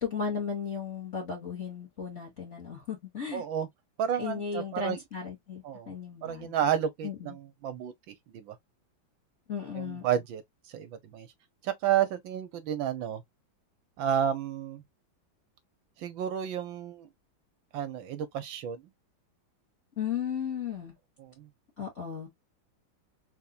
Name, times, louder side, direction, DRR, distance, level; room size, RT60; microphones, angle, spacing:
voice 1, 0.0-3.4 4.2-6.5 7.0-7.3 9.5-10.1 20.0-20.9 21.8-22.3, left 6 dB, 35° left, 1.8 m, -35 dB
voice 2, 3.3-3.7 4.0-5.0 5.6-5.9 6.2-8.6 9.8-10.4 10.7-11.3 11.6-13.2 14.0-14.8 16.0-17.1 17.7-18.8 21.2-21.5, right 9 dB, 75° right, 1.5 m, -31 dB
4.2 x 3.6 x 2.3 m
omnidirectional pair, 2.2 m